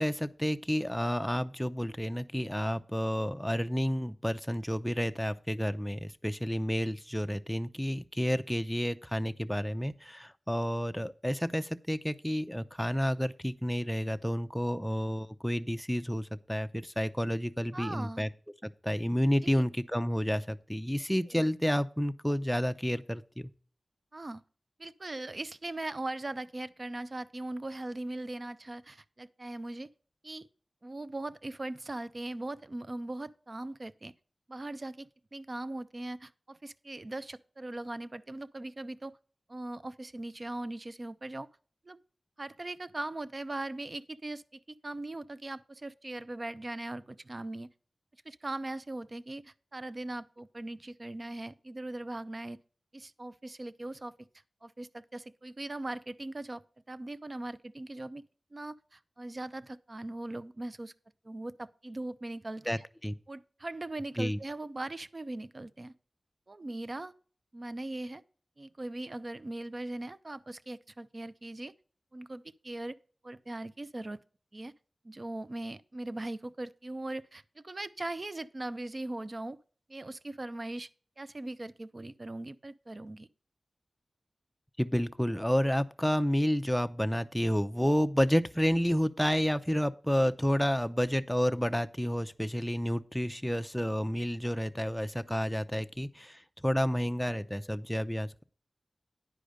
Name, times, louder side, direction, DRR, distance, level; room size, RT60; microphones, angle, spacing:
voice 1, 0.0-18.3 18.6-23.5 62.7-63.1 64.2-64.4 84.8-98.4, equal, 5° left, 0.6 m, -30 dB
voice 2, 17.7-18.3 19.4-19.6 21.3-21.5 24.1-24.4 24.8-29.9 30.2-30.5 30.8-34.1 34.5-39.2 39.5-41.5 41.8-42.0 42.4-47.7 48.2-52.6 52.9-54.1 54.6-56.6 56.9-58.2 58.5-60.9 61.2-62.8 63.3-65.9 66.5-67.1 67.5-68.2 68.6-71.7 72.1-72.9 73.2-74.2 74.5-74.7 75.0-79.6 79.9-80.9 81.2-83.3, right 2 dB, 45° right, 0.6 m, -40 dB
10.5 x 5.0 x 6.4 m
wide cardioid pair, 60°, 0 cm